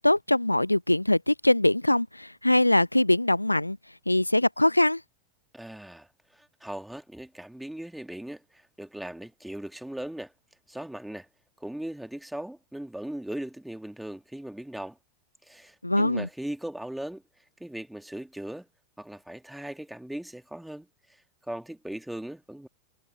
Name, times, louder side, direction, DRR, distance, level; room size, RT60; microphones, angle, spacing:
voice 1, 0.0-3.8 4.1-5.0 15.8-16.3, left 1 dB, 85° left, 0.5 m, -22 dB
voice 2, 5.5-10.3 10.7-11.3 11.6-15.0 15.4-17.2 17.6-18.7 19.0-22.7, right 1 dB, 5° right, 2.4 m, -39 dB
figure-of-eight pair, 90°, 0 cm